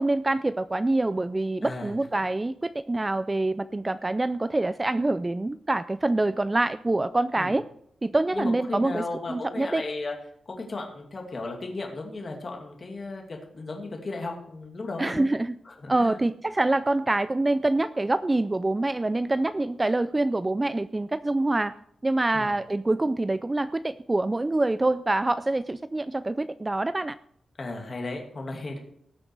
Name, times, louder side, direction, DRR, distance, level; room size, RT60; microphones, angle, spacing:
voice 1, 0.0-7.6 8.0-9.8 15.0-15.6 15.9-21.7 22.0-27.2, right 2 dB, 15° right, 14 dB, 0.3 m, -25 dB
voice 2, 1.6-2.0 7.3-7.6 8.3-10.1 10.5-15.3 15.7-16.2 22.3-22.5 27.6-28.8, left 3 dB, 35° left, 1 dB, 2.4 m, -35 dB
18.0 x 6.5 x 4.7 m, 0.69 s
wide cardioid pair, 150°, 0 cm